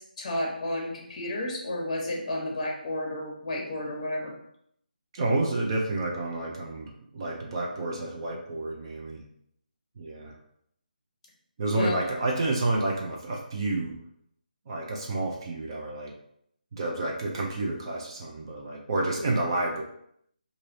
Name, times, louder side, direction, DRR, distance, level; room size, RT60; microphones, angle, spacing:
voice 1, 0.0-4.3 11.7-12.0, left 1 dB, 40° left, -1 dB, 1.1 m, -32 dB
voice 2, 5.1-9.2 10.0-10.3 11.6-14.0 14.7-16.1 16.7-19.8, right 2 dB, 30° right, -1 dB, 0.6 m, -29 dB
3.2 x 2.6 x 4.0 m, 0.71 s
figure-of-eight pair, 165°, 5 cm